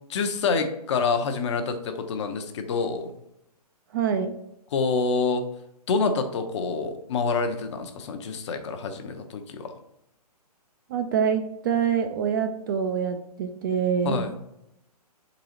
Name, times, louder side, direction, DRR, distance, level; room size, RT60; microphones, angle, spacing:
voice 1, 0.1-3.1 4.7-5.4 5.9-9.7 14.0-14.3, left 4 dB, 45° left, 6 dB, 0.7 m, -27 dB
voice 2, 3.9-4.3 10.9-14.3, right 7 dB, 30° right, 7 dB, 0.4 m, -25 dB
4.7 x 3.9 x 2.9 m, 0.81 s
hypercardioid pair, 135°, 20 cm